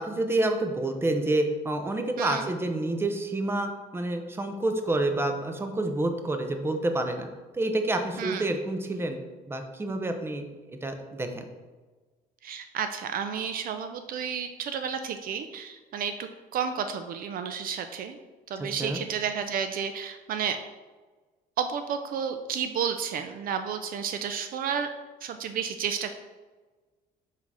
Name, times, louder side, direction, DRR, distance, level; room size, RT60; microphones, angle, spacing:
voice 1, 0.0-7.3 7.5-9.2 9.5-11.4 18.6-19.0, right 2 dB, 15° right, 6 dB, 0.7 m, -28 dB
voice 2, 2.2-2.5 8.2-8.5 12.4-18.2 18.5-20.6 21.6-24.9 25.2-26.1, right 7 dB, 60° right, 8 dB, 0.5 m, -31 dB
5.7 x 3.8 x 4.7 m, 1.3 s
cardioid pair, 110°, 17 cm